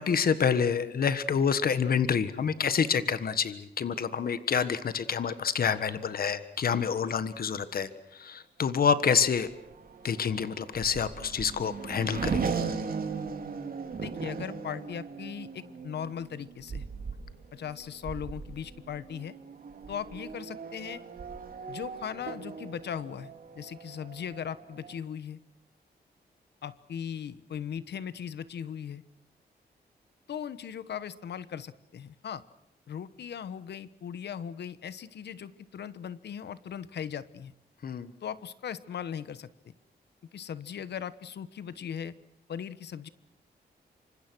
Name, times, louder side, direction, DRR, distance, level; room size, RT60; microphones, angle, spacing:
voice 1, 0.0-9.5 10.0-12.5 37.8-38.1, left 6 dB, 60° left, 13 dB, 1.5 m, -27 dB
Race car auto racing / Accelerating revving vroom, 8.8-25.0, right 5 dB, 60° right, 3.3 m, -38 dB
voice 2, 14.0-16.8 17.5-19.3 19.9-21.0 21.7-25.4 26.6-29.0 30.3-32.4 32.9-37.5 38.2-39.7 40.3-42.2 42.5-43.1, left 8 dB, 80° left, 15 dB, 1.2 m, -38 dB
27.5 x 25.5 x 6.2 m, 0.80 s
wide cardioid pair, 110°, 17 cm